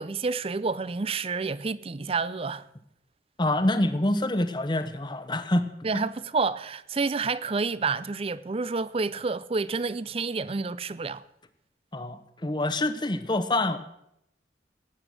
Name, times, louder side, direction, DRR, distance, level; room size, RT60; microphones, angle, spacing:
voice 1, 0.0-2.6 5.8-11.2, right 4 dB, 30° right, 0.5 m, -29 dB
voice 2, 3.4-5.7 5.9-6.0 11.9-13.8, left 1 dB, 25° left, 0.9 m, -26 dB
18.0 x 8.8 x 6.4 m
head